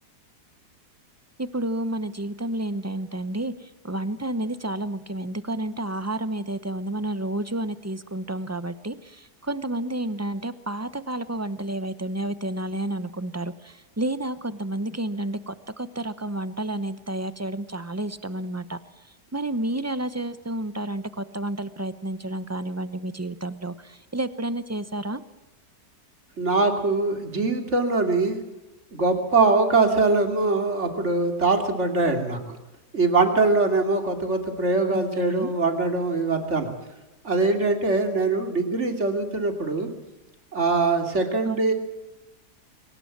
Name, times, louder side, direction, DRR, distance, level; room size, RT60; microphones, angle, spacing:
voice 1, 1.4-18.8 19.3-25.2 34.9-35.5 41.4-41.7, right 1 dB, 15° right, 13 dB, 0.6 m, -30 dB
voice 2, 26.4-28.4 28.9-32.6 32.9-36.7 37.2-39.9 40.5-41.7, right 3 dB, 45° right, 5 dB, 3.1 m, -22 dB
23.0 x 19.0 x 7.4 m, 1.0 s
omnidirectional pair, 1.7 m